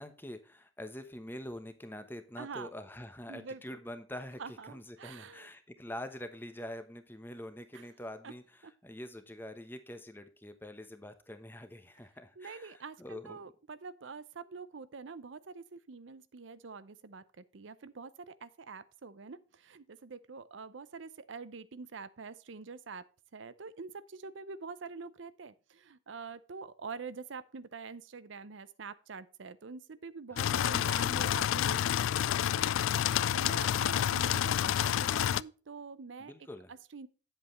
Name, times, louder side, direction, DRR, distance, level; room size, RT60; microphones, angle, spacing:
voice 1, 0.0-13.4 36.2-36.7, left 1 dB, 10° left, 1.0 m, -45 dB
voice 2, 2.4-2.7 3.3-3.6 4.4-5.5 7.7-7.8 8.2-8.3 8.6-8.7 12.4-23.1 23.3-36.3 36.7-37.1, right 5 dB, 75° right, 0.6 m, -46 dB
sound 1, 30.4-35.4, left 10 dB, 85° left, 0.3 m, -29 dB
9.5 x 8.0 x 3.2 m
head